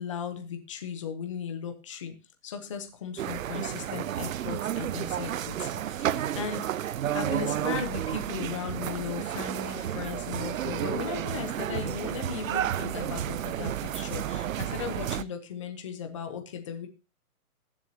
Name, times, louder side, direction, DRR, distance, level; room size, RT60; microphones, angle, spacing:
voice 1, 0.0-2.1 2.4-16.9, left 7 dB, 20° left, 6 dB, 0.8 m, -37 dB
sound 1, 3.2-15.2, right 11 dB, 65° right, 0.6 m, -31 dB
21.0 x 7.4 x 2.8 m, 0.32 s
hypercardioid pair, 175°, 44 cm